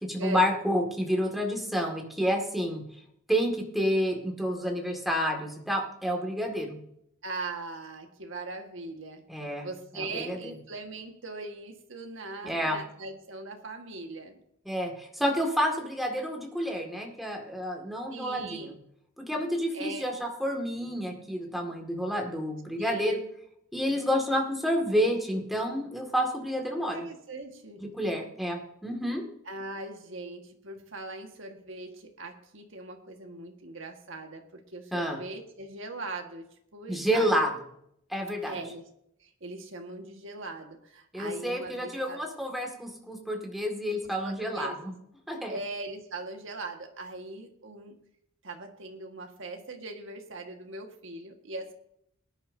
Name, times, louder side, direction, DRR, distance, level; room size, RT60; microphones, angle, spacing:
voice 1, 0.0-2.8 3.3-6.8 9.3-9.7 9.9-10.5 12.4-12.8 14.7-18.8 19.2-23.2 23.7-27.1 27.8-29.3 34.9-35.2 36.9-37.5 38.1-38.6 41.1-44.9 45.3-45.6, equal, ahead, 1 dB, 2.0 m, -29 dB
voice 2, 7.2-9.2 9.6-14.4 18.1-18.8 19.7-20.1 22.8-23.3 26.7-27.8 29.4-37.5 38.4-38.9 39.2-42.2 44.0-44.8 45.5-48.0 48.4-51.7, right 2 dB, 65° right, 4 dB, 1.6 m, -40 dB
18.0 x 10.5 x 2.7 m, 0.73 s
head